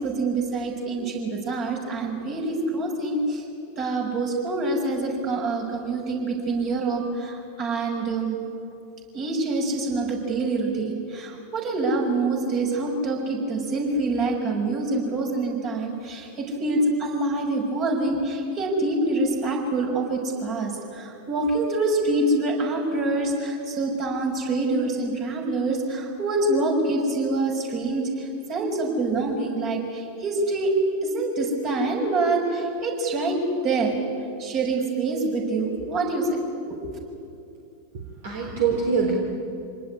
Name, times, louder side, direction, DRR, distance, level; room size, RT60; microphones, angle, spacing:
voice 1, 0.0-3.4 3.8-8.4 9.1-30.7 31.0-34.0 34.4-36.4 36.7-37.0, right 2 dB, 35° right, 1 dB, 6.2 m, -26 dB
voice 2, 37.9-39.1, right 6 dB, 55° right, -1 dB, 3.7 m, -24 dB
27.0 x 19.0 x 10.0 m, 2.6 s
figure-of-eight pair, 90°, 0 cm